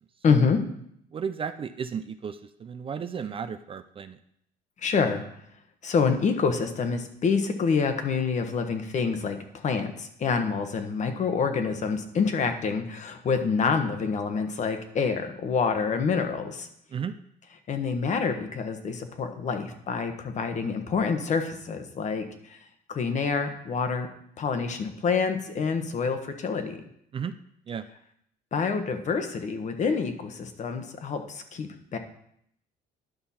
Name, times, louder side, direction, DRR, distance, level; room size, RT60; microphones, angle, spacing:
voice 1, 0.2-0.6 4.8-5.2 5.8-16.7 17.7-22.6 22.9-24.1 24.4-26.8 28.5-32.0, left 5 dB, 45° left, 7 dB, 1.1 m, -27 dB
voice 2, 1.1-4.2 16.9-17.1 27.1-27.3 27.7-27.9, right 7 dB, 30° right, 11 dB, 0.4 m, -34 dB
10.5 x 5.6 x 4.2 m, 0.71 s
cardioid pair, 110°, 17 cm